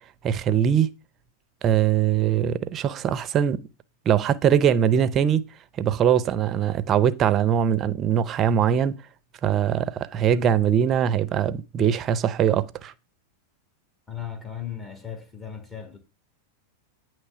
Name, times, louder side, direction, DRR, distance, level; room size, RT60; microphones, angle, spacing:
voice 1, 0.2-0.9 1.6-3.6 4.1-5.4 5.8-9.0 9.4-12.9, right 9 dB, 35° right, 0.6 m, -22 dB
voice 2, 14.1-16.0, left 9 dB, 20° left, 1.8 m, -36 dB
9.5 x 3.2 x 6.8 m
hypercardioid pair, 100°, 0 cm